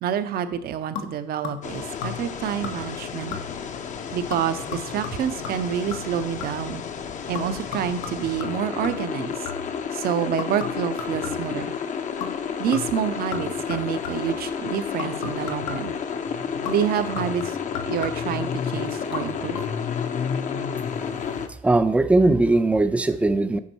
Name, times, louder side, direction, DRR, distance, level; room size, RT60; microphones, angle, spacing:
voice 1, 0.0-3.4 4.1-6.8 7.3-9.5 9.9-11.7 12.6-15.9 16.7-17.6 17.8-19.6, right 9 dB, 65° right, 11 dB, 0.7 m, -28 dB
sound 1, 1.0-1.7 2.0-2.4 2.6-3.0 3.3-3.7 4.3-6.7 7.3-9.8 10.4-11.7 12.2-12.4 12.7-14.4 15.0-16.0 16.7-18.4 19.0-19.2 19.5-19.6, left 6 dB, 85° left, 1.2 m, -36 dB
sound 2, 1.6-21.5, left 6 dB, 45° left, 0.7 m, -31 dB
voice 2, 21.6-23.6, right 2 dB, 5° right, 10 dB, 0.5 m, -19 dB
8.4 x 5.2 x 4.5 m, 0.74 s
cardioid pair, 110°, 17 cm